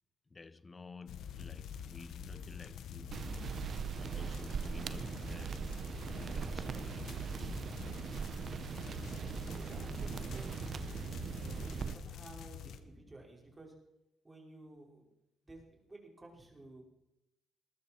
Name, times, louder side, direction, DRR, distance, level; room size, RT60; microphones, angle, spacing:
voice 1, 0.3-3.4 3.9-5.7 6.1-7.7, left 3 dB, 25° left, 0.7 m, -52 dB
sound 1, 1.1-12.8, left 8 dB, 75° left, 1.1 m, -47 dB
sound 2, 3.1-11.9, right 6 dB, 55° right, 0.8 m, -40 dB
voice 2, 9.1-11.1 11.6-13.7 14.2-15.1 15.4-16.8, right 2 dB, 20° right, 4.9 m, -54 dB
20.5 x 11.5 x 4.4 m
cardioid pair, 90°, 0 cm